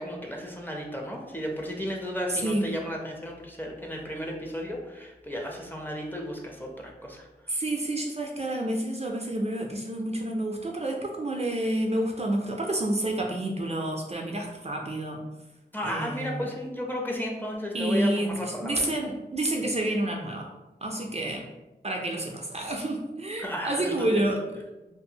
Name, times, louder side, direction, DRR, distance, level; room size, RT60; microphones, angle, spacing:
voice 1, 0.0-7.3 15.7-18.8 23.4-24.2, equal, 10° left, 0 dB, 0.5 m, -34 dB
voice 2, 2.3-2.6 7.5-15.2 15.8-16.5 17.7-20.5 20.8-21.5 21.8-24.6, right 1 dB, 40° right, 0 dB, 0.4 m, -29 dB
2.5 x 2.3 x 2.7 m, 1.0 s
cardioid pair, 50°, 18 cm